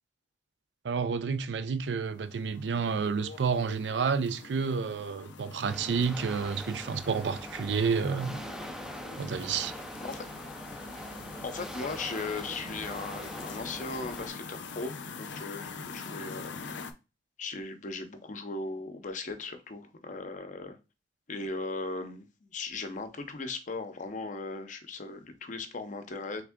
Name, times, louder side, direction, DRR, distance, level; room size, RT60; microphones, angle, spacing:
voice 1, 0.8-8.4 9.2-9.7, right 5 dB, 75° right, 0.4 m, -30 dB
sound 1, 1.8-16.9, left 5 dB, 85° left, 0.5 m, -44 dB
sound 2, 5.7-14.3, equal, 5° right, 0.4 m, -43 dB
voice 2, 11.4-16.6 17.4-20.8 21.3-26.4, left 3 dB, 45° left, 0.6 m, -38 dB
3.6 x 3.4 x 3.5 m
head